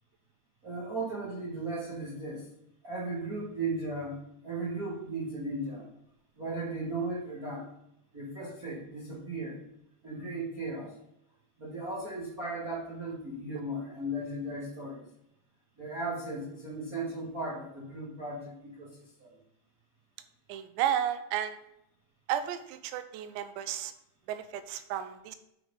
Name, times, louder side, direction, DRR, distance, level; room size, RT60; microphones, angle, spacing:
voice 1, 0.6-2.5 2.8-5.8 6.4-7.6 8.1-9.6 10.0-10.9 11.6-15.0 15.8-18.9 19.2-19.3, right 2 dB, 35° right, -6 dB, 1.5 m, -36 dB
voice 2, 20.5-21.6 22.3-23.9 24.3-25.4, right 10 dB, 90° right, 11 dB, 3.0 m, -33 dB
10.0 x 5.0 x 5.4 m, 0.81 s
omnidirectional pair, 5.1 m